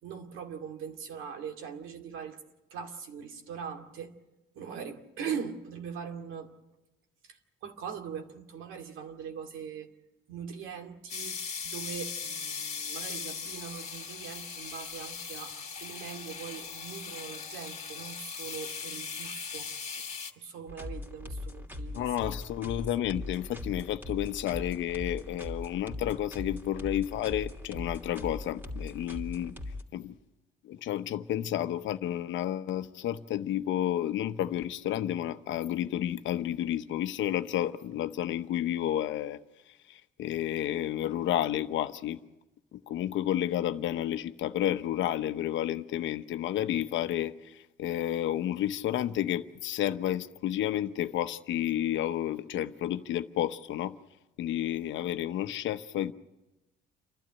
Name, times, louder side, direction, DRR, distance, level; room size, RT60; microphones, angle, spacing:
voice 1, 0.0-2.4 2.7-4.1 4.6-6.5 7.2-9.9 10.3-19.7 20.4-22.3, right 7 dB, 80° right, 2.4 m, -41 dB
sound 1, 11.1-20.3, left 6 dB, 35° left, 2.4 m, -39 dB
sound 2, 20.7-29.8, left 2 dB, 10° right, 2.7 m, -40 dB
voice 2, 21.9-29.5 29.9-30.1 30.6-39.4 39.9-42.2 42.7-54.0 54.4-56.1, left 12 dB, 70° left, 0.9 m, -31 dB
29.0 x 12.0 x 9.9 m
cardioid pair, 105°, 20 cm